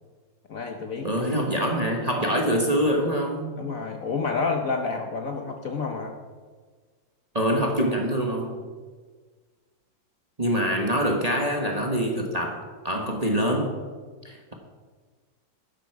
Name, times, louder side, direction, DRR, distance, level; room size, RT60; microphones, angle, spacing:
voice 1, 0.5-1.2 3.6-6.2, left 4 dB, 55° left, 4 dB, 1.1 m, -29 dB
voice 2, 1.0-3.6 7.3-8.6 10.4-13.7 14.2-14.5, equal, 25° right, 1 dB, 1.2 m, -25 dB
12.5 x 10.0 x 4.7 m, 1.5 s
omnidirectional pair, 2.1 m